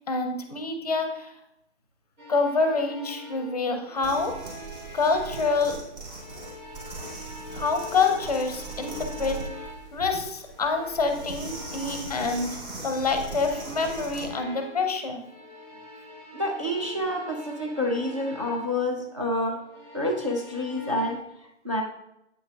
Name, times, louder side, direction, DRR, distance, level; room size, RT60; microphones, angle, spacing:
voice 1, 0.1-1.3 2.3-4.3 4.9-5.8 7.5-9.4 9.9-15.3, left 4 dB, 35° left, 5 dB, 0.5 m, -27 dB
sound 1, 2.2-5.8 6.1-10.0 10.5-14.9 15.2-18.8 19.6-21.2, left 1 dB, 80° right, 2.2 m, -43 dB
sound 2, 4.0-14.3, right 3 dB, 50° right, 2.3 m, -40 dB
voice 2, 16.3-19.6 19.9-21.8, left 1 dB, 30° right, -1 dB, 0.4 m, -28 dB
8.1 x 6.0 x 2.3 m, 0.84 s
figure-of-eight pair, 135°, 35 cm